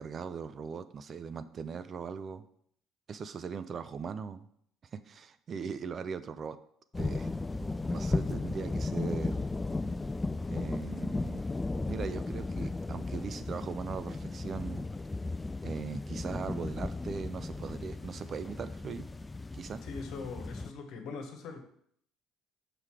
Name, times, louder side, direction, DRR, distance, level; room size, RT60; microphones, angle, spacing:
voice 1, 0.0-2.4 3.1-4.5 4.9-6.6 7.0-7.3 7.9-9.5 10.5-11.4 11.9-14.8 15.6-19.1 19.5-19.8, right 6 dB, 45° right, 12 dB, 0.5 m, -39 dB
sound 1, 6.9-20.7, left 3 dB, 20° left, 0.3 m, -35 dB
voice 2, 19.8-21.6, left 4 dB, 65° left, 5 dB, 1.2 m, -41 dB
5.7 x 5.0 x 4.8 m, 0.66 s
hypercardioid pair, 70°, 0 cm